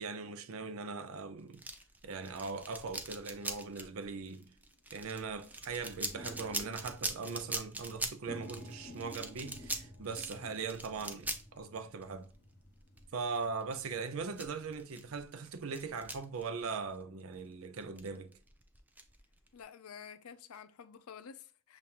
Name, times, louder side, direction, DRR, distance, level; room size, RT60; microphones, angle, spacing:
voice 1, 0.0-1.6 2.0-4.5 4.9-12.3 13.1-18.3, right 4 dB, 70° right, 0.5 m, -40 dB
sound 1, 1.5-17.3 17.8-19.6, right 2 dB, 10° right, 0.4 m, -42 dB
sound 2, 4.0-4.3 4.7-4.8 5.0-14.7, left 1 dB, 50° left, 1.3 m, -53 dB
voice 2, 19.5-21.8, left 7 dB, 75° left, 0.5 m, -50 dB
6.9 x 2.5 x 2.8 m
head